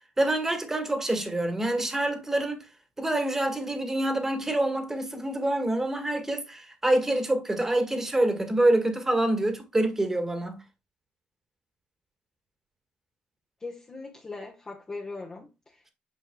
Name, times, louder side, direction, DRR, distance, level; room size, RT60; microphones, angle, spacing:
voice 1, 0.2-2.7 3.0-10.6, right 1 dB, 15° right, 1.7 m, -26 dB
voice 2, 13.6-15.9, left 3 dB, 25° left, 1.2 m, -40 dB
8.4 x 5.7 x 2.2 m
cardioid pair, 105°, 3 cm